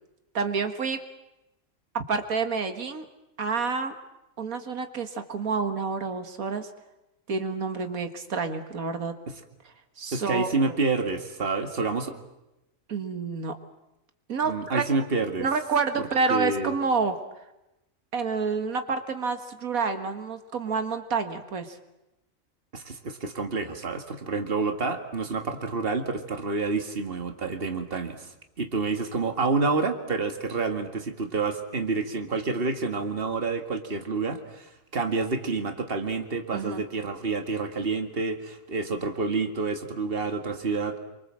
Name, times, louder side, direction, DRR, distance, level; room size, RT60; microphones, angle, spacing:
voice 1, 0.3-1.0 1.9-3.1 3.4-3.9 4.4-6.7 7.3-9.1 10.0-10.8 12.9-13.5 14.3-14.8 15.4-17.5 18.1-21.8 36.5-36.8, right 4 dB, 85° right, 7 dB, 2.0 m, -28 dB
voice 2, 10.1-12.1 14.4-15.5 16.0-16.7 22.7-41.0, right 4 dB, 40° right, 6 dB, 2.2 m, -28 dB
27.5 x 24.5 x 7.6 m, 0.92 s
omnidirectional pair, 1.4 m